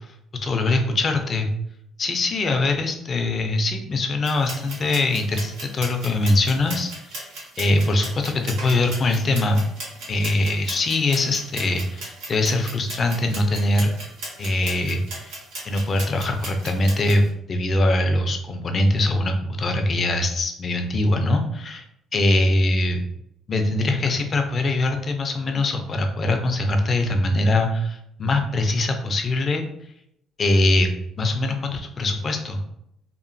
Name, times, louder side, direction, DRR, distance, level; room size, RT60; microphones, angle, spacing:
voice 1, 0.4-1.5 2.0-7.3 7.6-9.6 10.1-13.9 14.4-15.4 15.6-17.2 17.5-21.8 22.1-23.0 23.5-29.6 30.4-30.9 31.2-32.6, left 2 dB, 35° left, 5 dB, 0.4 m, -22 dB
sound 1, 4.2-17.2, right 2 dB, 90° right, 1.2 m, -37 dB
2.9 x 2.4 x 2.6 m, 0.77 s
cardioid pair, 125°, 0 cm